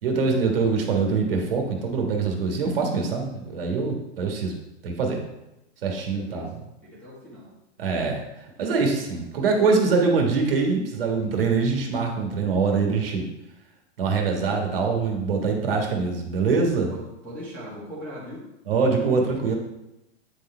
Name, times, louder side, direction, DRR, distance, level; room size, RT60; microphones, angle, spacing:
voice 1, 0.0-4.5 4.8-5.2 5.8-6.5 7.8-8.2 8.6-13.2 14.0-16.9 18.7-19.6, right 4 dB, 55° right, 1 dB, 1.5 m, -24 dB
voice 2, 5.9-7.5 16.9-18.5, equal, 5° left, -8 dB, 1.5 m, -40 dB
8.9 x 4.1 x 4.3 m, 0.92 s
hypercardioid pair, 170°, 35 cm